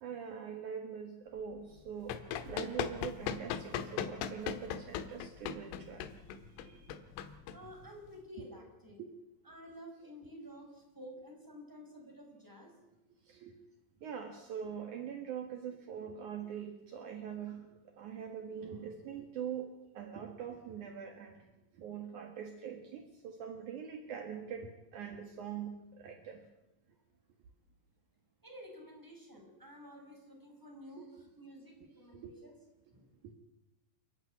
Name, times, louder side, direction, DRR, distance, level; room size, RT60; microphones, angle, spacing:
voice 1, 0.0-2.2 2.4-7.0 8.4-8.5 9.0-9.1 13.3-13.6 14.0-17.7 17.9-21.5 21.7-26.4 31.0-31.1 32.1-32.3 33.2-33.3, right 7 dB, 70° right, 5 dB, 1.8 m, -43 dB
Run, 1.7-8.2, left 9 dB, 75° left, 3.6 m, -39 dB
voice 2, 7.5-9.0 9.4-12.7 28.4-32.6 32.9-33.1, equal, 5° right, 1 dB, 5.3 m, -51 dB
29.5 x 11.5 x 9.6 m, 1.0 s
omnidirectional pair, 5.9 m